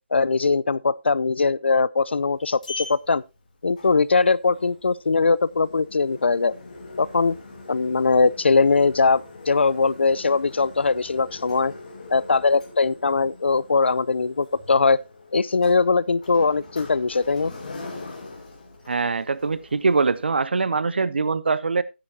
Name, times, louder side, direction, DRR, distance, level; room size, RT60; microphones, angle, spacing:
voice 1, 0.1-3.2 3.6-6.5 7.0-7.4 7.7-11.7 12.1-15.0 15.3-17.5, left 4 dB, 70° left, 0.5 m, -21 dB
Sliding door, 2.0-20.3, left 3 dB, 40° left, 3.0 m, -42 dB
voice 2, 18.9-21.8, right 4 dB, 60° right, 0.7 m, -23 dB
13.0 x 10.0 x 2.8 m
hypercardioid pair, 175°, 6 cm